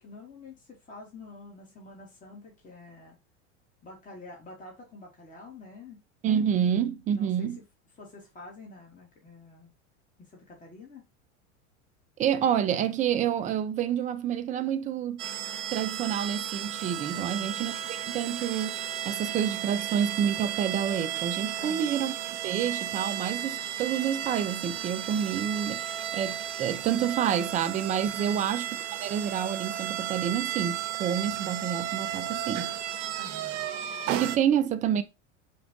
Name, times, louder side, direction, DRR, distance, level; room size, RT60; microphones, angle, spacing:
voice 1, 0.0-3.2 3.8-6.0 7.1-7.5 8.0-9.7 10.2-11.0 17.1-17.7 21.6-21.9 28.2-28.5 33.2-33.7, left 3 dB, 20° left, 1.7 m, -47 dB
voice 2, 6.2-7.6 12.2-15.2 15.7-22.1 22.4-28.7 29.0-32.7 34.1-35.0, right 9 dB, 20° right, 0.4 m, -28 dB
sound 1, 15.2-34.4, right 11 dB, 70° right, 0.8 m, -34 dB
4.5 x 2.5 x 3.7 m
hypercardioid pair, 100°, 37 cm